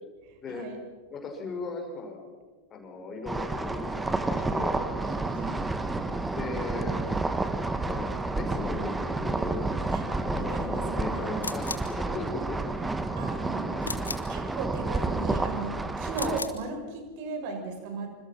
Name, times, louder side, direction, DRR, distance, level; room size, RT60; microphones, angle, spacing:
voice 1, 0.3-0.8 5.0-5.6 9.9-11.4 12.8-13.9 14.3-18.1, right 3 dB, 45° right, 5 dB, 5.9 m, -37 dB
voice 2, 1.1-2.2 2.7-4.8 6.4-7.0 7.8-9.7 10.1-12.6 13.7-13.9, left 3 dB, 25° left, 2 dB, 6.0 m, -37 dB
sound 1, 3.3-16.4, right 2 dB, 10° right, 1.7 m, -30 dB
sound 2, 11.4-11.9 13.8-14.3 16.1-16.6, left 4 dB, 80° left, 2.0 m, -36 dB
27.5 x 26.0 x 6.0 m, 1.4 s
figure-of-eight pair, 90°, 0 cm